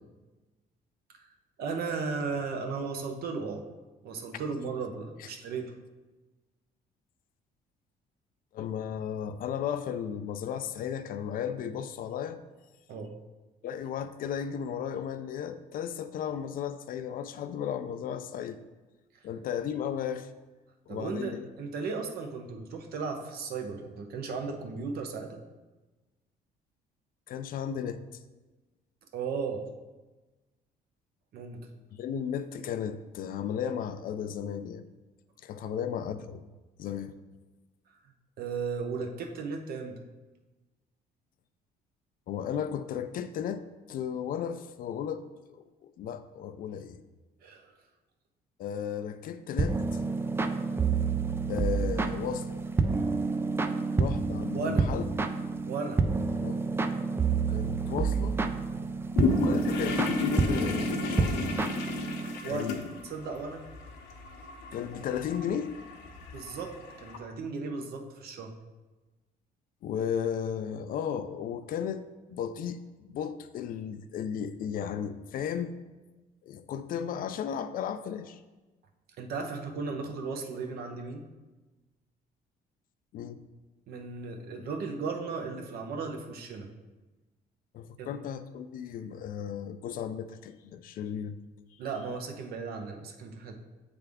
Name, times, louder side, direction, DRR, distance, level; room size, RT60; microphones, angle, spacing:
voice 1, 1.6-3.6 4.0-5.7 12.9-13.1 20.9-25.4 29.1-29.7 31.3-31.6 35.6-35.8 38.4-39.9 47.4-47.7 54.5-54.9 55.7-56.0 62.4-62.7 63.0-63.7 66.3-68.6 79.2-81.3 83.9-86.7 88.0-88.1 91.8-93.6, right 4 dB, 65° right, 4 dB, 0.8 m, -35 dB
voice 2, 8.5-12.4 13.6-18.6 19.2-20.3 20.9-21.5 27.3-28.0 31.9-34.8 35.4-36.4 36.8-37.1 42.3-47.0 48.6-50.0 51.5-52.5 54.0-55.1 56.4-56.6 57.5-58.4 59.4-61.4 62.4-62.8 64.7-65.8 69.8-72.0 72.3-75.8 76.4-78.4 83.1-83.4 87.7-91.4, left 8 dB, 55° left, 11 dB, 0.4 m, -34 dB
sound 1, 49.6-62.4, right 4 dB, 15° right, 0.3 m, -29 dB
sound 2, 59.1-67.2, left 4 dB, 85° left, 0.9 m, -34 dB
7.9 x 3.4 x 3.5 m, 1.2 s
cardioid pair, 110°, 17 cm